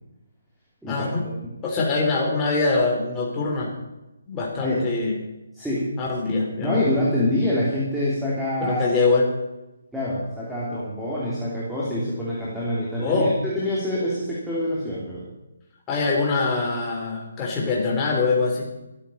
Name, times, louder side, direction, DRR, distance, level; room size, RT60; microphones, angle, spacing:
voice 1, 0.9-1.2 1.6-3.7 4.3-5.2 6.0-6.8 8.6-9.3 13.0-13.3 15.9-18.7, left 3 dB, 15° left, -3 dB, 3.8 m, -23 dB
voice 2, 5.5-6.0 6.6-8.8 9.9-15.3, left 1 dB, ahead, -8 dB, 3.1 m, -26 dB
14.0 x 13.5 x 5.6 m, 0.97 s
hypercardioid pair, 165°, 0 cm